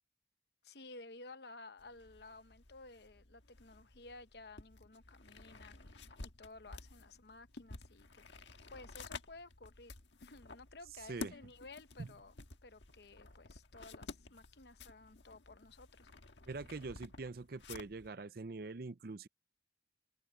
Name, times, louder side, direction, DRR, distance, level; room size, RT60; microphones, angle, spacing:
voice 1, 0.6-12.3 12.6-16.1, left 3 dB, 65° left, 0.9 m, -55 dB
sound 1, 1.8-18.1, left 3 dB, 85° left, 1.6 m, -53 dB
voice 2, 16.5-19.3, right 3 dB, 55° right, 0.6 m, -44 dB
open air
head